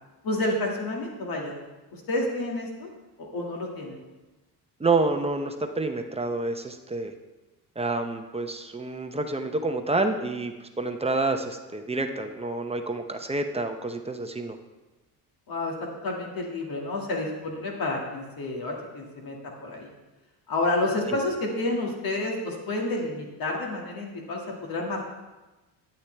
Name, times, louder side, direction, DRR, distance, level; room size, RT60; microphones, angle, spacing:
voice 1, 0.2-1.5 1.9-2.9 3.2-4.0 15.5-15.7 16.0-19.9 20.5-25.0, left 2 dB, 60° left, -1 dB, 2.1 m, -30 dB
voice 2, 4.8-7.1 7.8-14.6, right 3 dB, 15° right, 5 dB, 0.7 m, -28 dB
13.0 x 8.6 x 3.3 m, 1.1 s
cardioid pair, 110°, 39 cm